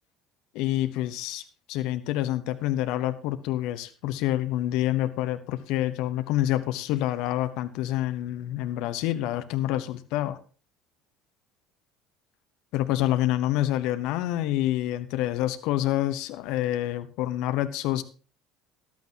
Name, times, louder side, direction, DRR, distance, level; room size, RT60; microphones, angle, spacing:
voice 1, 0.5-1.4 1.7-10.4 12.7-18.0, left 14 dB, 60° left, 11 dB, 0.9 m, -27 dB
14.5 x 12.0 x 2.9 m, 0.36 s
figure-of-eight pair, 60°, 0 cm